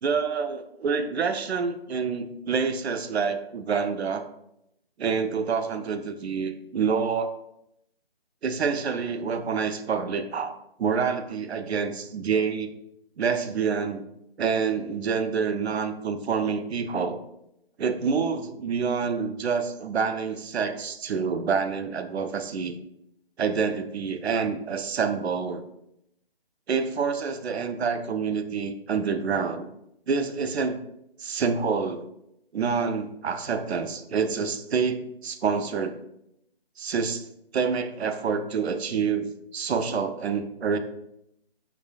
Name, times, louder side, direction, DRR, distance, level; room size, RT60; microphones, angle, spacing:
voice 1, 0.0-4.3 5.0-7.3 8.4-12.7 13.2-14.0 14.4-17.2 17.8-22.7 23.4-25.6 26.7-29.7 30.1-30.8 31.2-32.1 32.5-36.0 36.8-37.3 37.5-40.8, right 5 dB, 85° right, 9 dB, 0.5 m, -27 dB
5.3 x 2.6 x 2.2 m, 0.80 s
figure-of-eight pair, 160°, 31 cm